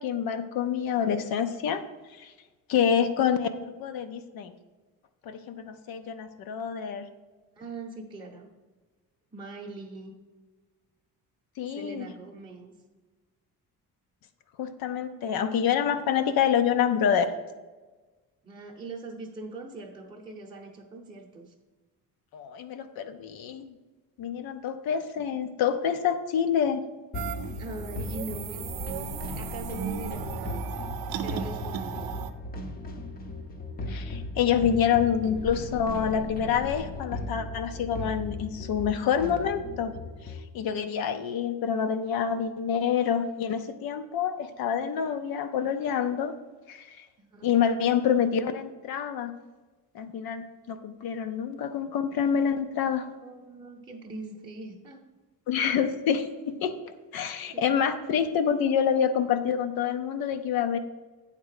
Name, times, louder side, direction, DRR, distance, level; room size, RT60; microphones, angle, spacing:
voice 1, 0.0-1.8 2.2-2.3 2.7-4.5 5.2-7.1 11.6-12.1 14.6-17.3 22.3-23.7 24.2-26.8 33.9-39.9 40.2-46.3 46.7-47.1 47.4-49.3 49.9-53.0 55.5-60.8, left 8 dB, 70° left, 9 dB, 0.7 m, -27 dB
voice 2, 7.6-8.5 9.3-10.1 11.7-12.7 18.4-21.5 27.6-30.7 31.2-32.2 47.2-47.5 53.2-55.0 57.5-57.7, right 2 dB, 10° right, -3 dB, 0.8 m, -41 dB
sound 1, 27.1-40.4, left 2 dB, 25° left, 0.6 m, -37 dB
sound 2, 27.1-32.3, right 10 dB, 75° right, 0.6 m, -36 dB
9.1 x 3.7 x 6.4 m, 1.3 s
cardioid pair, 180°, 37 cm